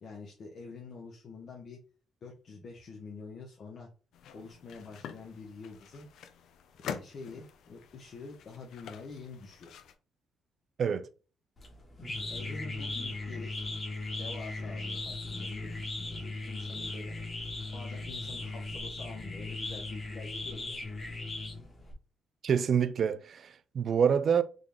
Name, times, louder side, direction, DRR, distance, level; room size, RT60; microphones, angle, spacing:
voice 1, 0.0-1.8 2.2-3.9 4.3-6.1 6.8-9.7 11.9-13.5 14.2-20.7, left 4 dB, 55° left, 0.8 m, -46 dB
sound 1, 4.1-9.9, left 8 dB, 75° left, 0.4 m, -46 dB
sound 2, 11.6-21.9, left 2 dB, 35° left, 1.4 m, -38 dB
voice 2, 22.4-24.4, right 7 dB, 55° right, 0.4 m, -27 dB
3.8 x 2.3 x 3.4 m
cardioid pair, 90°, 0 cm